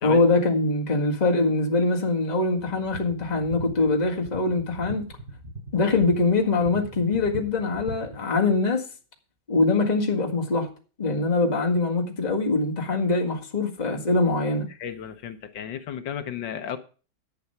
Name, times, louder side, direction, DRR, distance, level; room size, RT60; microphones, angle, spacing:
voice 1, 0.0-5.1 5.7-8.9 9.5-10.7 11.0-14.7, left 3 dB, 25° left, 1.9 m, -23 dB
sound 1, 2.6-8.2, right 1 dB, 25° right, 6.6 m, -40 dB
voice 2, 14.7-16.8, left 9 dB, 80° left, 1.7 m, -34 dB
11.0 x 8.0 x 5.6 m
omnidirectional pair, 2.0 m